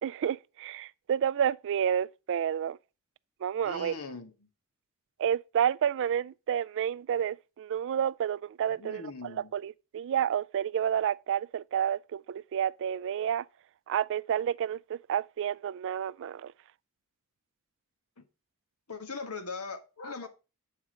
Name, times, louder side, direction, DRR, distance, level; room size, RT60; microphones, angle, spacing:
voice 1, 0.0-2.8 3.4-3.9 5.2-13.5 13.9-16.5, right 9 dB, 60° right, 0.3 m, -30 dB
voice 2, 3.6-4.3 8.8-9.5 18.2-18.3 18.9-20.3, left 3 dB, 90° left, 1.5 m, -40 dB
8.1 x 4.9 x 5.1 m
head